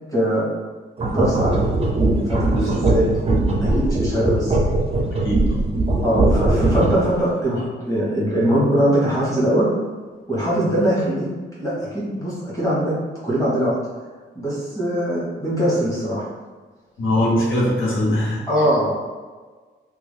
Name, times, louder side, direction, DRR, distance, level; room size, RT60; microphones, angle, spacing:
voice 1, 0.1-0.4 1.1-1.6 2.3-3.2 3.6-4.5 6.0-9.7 10.3-11.3 11.6-12.9 13.2-13.7 14.3-16.3 18.5-18.9, equal, 15° left, -9 dB, 1.4 m, -21 dB
sound 1, 1.0-7.2, right 2 dB, 30° right, 0.4 m, -20 dB
voice 2, 5.2-5.6 17.0-18.4, left 1 dB, 85° left, -5 dB, 0.8 m, -21 dB
2.9 x 2.2 x 3.3 m, 1.4 s
wide cardioid pair, 125°, 20 cm